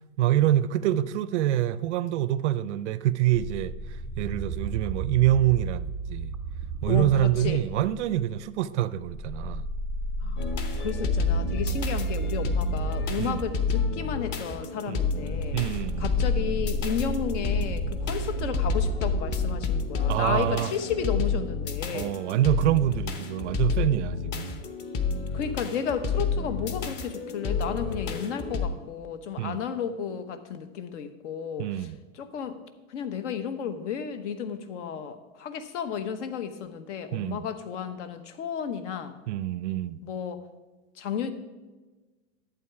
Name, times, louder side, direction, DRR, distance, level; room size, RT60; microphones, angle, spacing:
voice 1, 0.2-3.7 4.2-6.3 6.8-9.7 11.7-11.8 13.2-13.4 14.9-15.0 15.5-16.1 20.1-20.7 21.9-24.6 29.4-29.6 31.6-32.0 37.1-37.5 39.3-40.0, right 13 dB, 60° right, 0.6 m, -26 dB
sound 1, 3.3-8.5 9.0-20.5, right 2 dB, ahead, 0.5 m, -33 dB
voice 2, 6.9-7.6 10.2-10.4 10.8-15.6 16.0-22.2 25.3-32.6 32.9-39.1 40.0-40.4 41.0-41.3, left 7 dB, 60° left, 1.2 m, -33 dB
sound 2, 10.4-28.7, left 5 dB, 25° left, 0.9 m, -30 dB
11.5 x 8.1 x 4.7 m
hypercardioid pair, 135°, 39 cm